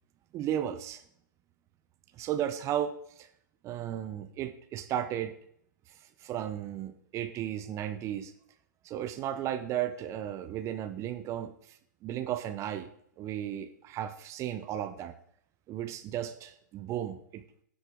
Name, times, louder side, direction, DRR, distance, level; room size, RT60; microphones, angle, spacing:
voice 1, 0.3-1.0 2.1-3.3 3.6-5.3 6.2-8.3 8.8-11.8 12.0-12.9 13.2-15.1 15.7-17.4, right 11 dB, 25° right, 10 dB, 0.7 m, -34 dB
10.0 x 8.1 x 3.8 m, 0.67 s
hypercardioid pair, 115°, 11 cm